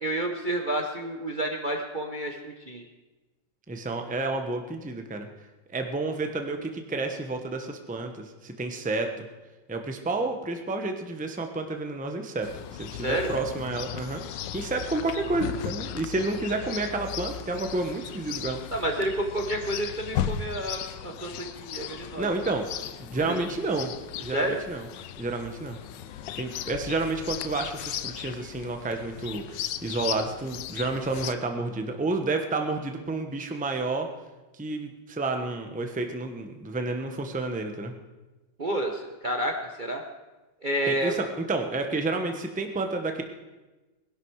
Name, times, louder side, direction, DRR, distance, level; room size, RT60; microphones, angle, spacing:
voice 1, 0.0-2.8 13.0-13.3 18.7-22.3 23.2-23.4 24.3-24.6 38.6-40.0 40.6-41.2, right 1 dB, 35° right, 2 dB, 0.9 m, -30 dB
voice 2, 3.7-5.3 5.7-9.3 9.7-18.6 22.2-23.9 24.2-24.9 25.2-25.8 26.4-34.1 34.5-37.9 40.8-43.2, right 3 dB, 5° right, 5 dB, 0.8 m, -30 dB
Chirp tweet, 12.4-31.4, left 10 dB, 75° left, 1.3 m, -37 dB
20.5 x 11.5 x 4.8 m, 1.2 s
omnidirectional pair, 2.0 m